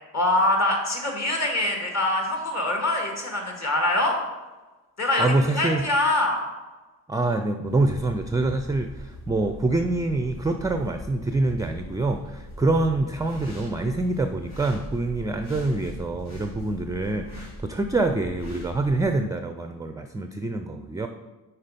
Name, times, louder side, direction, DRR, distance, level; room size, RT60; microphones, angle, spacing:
voice 1, 0.1-4.1 5.0-6.4, left 1 dB, 40° left, 1 dB, 2.0 m, -24 dB
voice 2, 5.2-5.9 7.1-21.1, right 2 dB, 10° right, 7 dB, 0.4 m, -25 dB
sound 1, 7.7-19.1, left 1 dB, 70° left, 2.3 m, -40 dB
5.6 x 4.4 x 5.2 m, 1.2 s
supercardioid pair, 55°, 40 cm